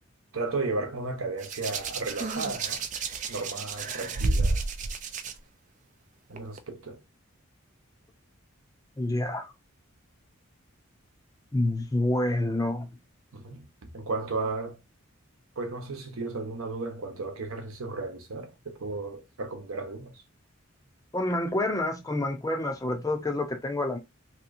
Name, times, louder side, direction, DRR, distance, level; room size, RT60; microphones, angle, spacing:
voice 1, 0.3-2.8 3.3-4.6 6.3-7.0 13.3-13.6 13.9-14.8 15.6-20.2, right 3 dB, 75° right, 0.9 m, -34 dB
Hands, 1.4-5.3 6.4-6.6, right 3 dB, 35° right, 0.4 m, -30 dB
voice 2, 9.0-9.5 11.5-12.9 21.1-24.0, left 1 dB, 15° left, 0.5 m, -28 dB
3.1 x 2.8 x 2.6 m
head